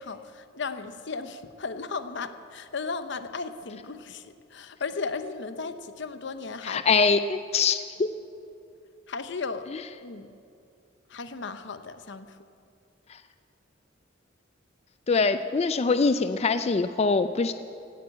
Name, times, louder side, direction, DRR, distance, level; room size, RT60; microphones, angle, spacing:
voice 1, 0.0-6.8 9.1-9.7 10.0-10.3 11.1-12.4, left 4 dB, 65° left, 10 dB, 0.8 m, -35 dB
voice 2, 6.6-8.1 15.1-17.5, left 4 dB, 35° left, 11 dB, 0.4 m, -23 dB
17.0 x 9.5 x 8.5 m, 2.5 s
head